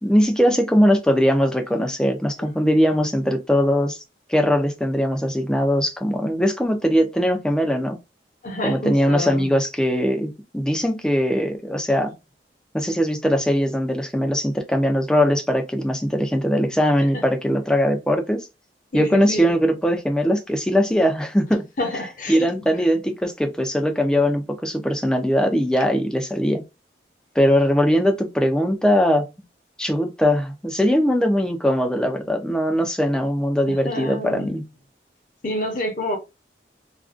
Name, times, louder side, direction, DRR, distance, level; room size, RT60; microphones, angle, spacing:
voice 1, 0.0-4.0 4.3-8.0 8.6-12.1 12.7-18.5 18.9-21.6 22.3-26.6 27.4-29.3 29.8-34.6, equal, 5° left, 0.3 m, -20 dB
voice 2, 8.4-9.5 17.1-17.2 18.9-19.6 21.8-22.5 33.7-34.5 35.4-36.2, left 1 dB, 45° left, 0.7 m, -28 dB
2.4 x 2.2 x 2.4 m
head